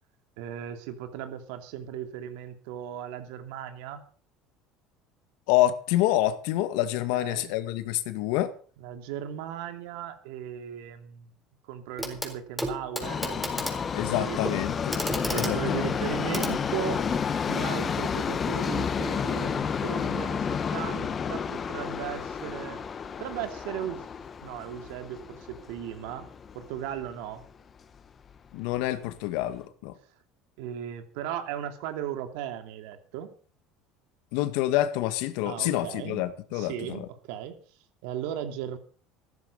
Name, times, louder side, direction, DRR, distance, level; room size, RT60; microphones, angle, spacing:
voice 1, 0.4-4.0 7.1-7.6 8.8-11.3 11.6-14.7 15.3-17.0 17.5-22.8 23.2-24.0 24.4-26.3 26.5-27.4 30.6-33.3 35.4-36.3 36.5-37.5 38.0-38.8, right 10 dB, 80° right, 2.8 m, -37 dB
voice 2, 5.5-8.5 13.9-15.0 15.3-16.0 28.5-29.9 34.3-37.1, left 14 dB, 80° left, 1.8 m, -27 dB
Clock, 12.0-12.3 12.6-17.3 18.5-18.6, equal, ahead, 4.4 m, -34 dB
Subway metro underground, 13.0-27.1 27.4-27.5 28.4-28.5 28.8-28.9 29.5-29.6, left 6 dB, 30° left, 1.1 m, -31 dB
15.0 x 13.5 x 5.6 m
cardioid pair, 125°, 0 cm